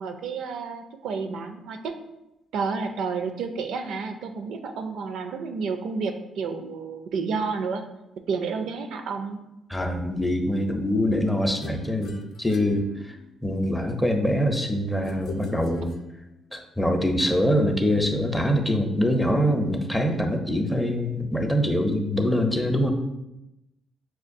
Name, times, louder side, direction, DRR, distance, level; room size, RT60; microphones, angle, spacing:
voice 1, 0.0-1.9 2.5-7.8 8.3-9.4, right 5 dB, 80° right, 6 dB, 0.4 m, -30 dB
voice 2, 9.7-13.2 13.4-15.9 16.5-22.9, equal, 10° left, 4 dB, 0.5 m, -24 dB
sound 1, 11.6-13.6 15.0-16.6, left 6 dB, 75° left, 0.3 m, -43 dB
6.1 x 2.3 x 2.5 m, 0.90 s
cardioid pair, 90°, 0 cm